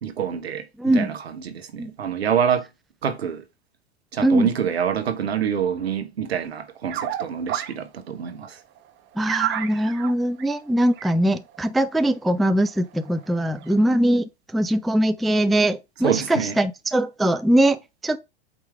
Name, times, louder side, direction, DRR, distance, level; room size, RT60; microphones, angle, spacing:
voice 1, 0.0-0.7 0.9-2.7 3.0-3.4 4.1-8.6 16.0-16.6, right 8 dB, 80° right, 1.3 m, -26 dB
voice 2, 0.8-1.1 1.8-1.9 4.2-4.5 9.2-18.2, right 1 dB, ahead, 0.4 m, -21 dB
sound 1, 6.4-7.9 8.1-8.3 8.8-8.9 9.1-12.1 12.4-12.5 12.7-14.0, right 11 dB, 35° right, 1.1 m, -31 dB
8.2 x 3.2 x 4.8 m
hypercardioid pair, 95°, 31 cm